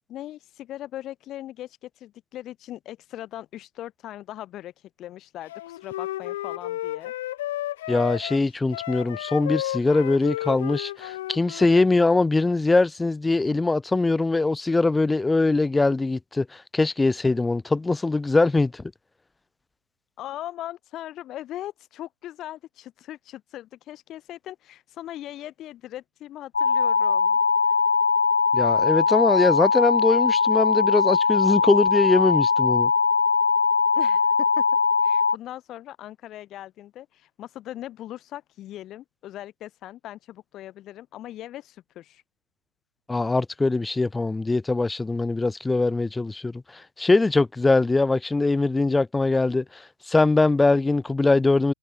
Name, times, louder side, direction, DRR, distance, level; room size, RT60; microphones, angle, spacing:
voice 1, 0.1-7.1 20.2-27.4 27.6-27.8 33.9-34.6 35.0-42.2, left 13 dB, 30° left, 3.1 m, -39 dB
Wind instrument woodwind instrument, 5.5-11.9, left 15 dB, 55° left, 1.8 m, -32 dB
voice 2, 7.9-18.8 28.5-32.9 43.1-49.8 50.1-51.7, left 3 dB, 5° left, 0.3 m, -22 dB
sound 1, 26.5-35.4, left 5 dB, 85° left, 0.4 m, -21 dB
hypercardioid pair, 115°, 0 cm